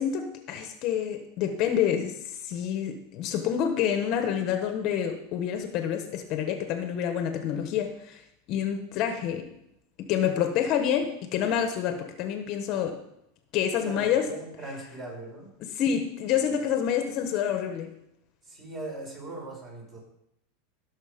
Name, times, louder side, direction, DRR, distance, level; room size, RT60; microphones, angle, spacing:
voice 1, 0.0-8.2 8.5-9.5 10.0-13.0 13.5-14.3 15.6-17.9, left 9 dB, 45° left, 7 dB, 1.2 m, -28 dB
voice 2, 13.8-15.5 18.4-20.0, right 2 dB, 30° right, -1 dB, 5.4 m, -39 dB
16.0 x 6.5 x 5.2 m, 0.81 s
supercardioid pair, 145°, 0 cm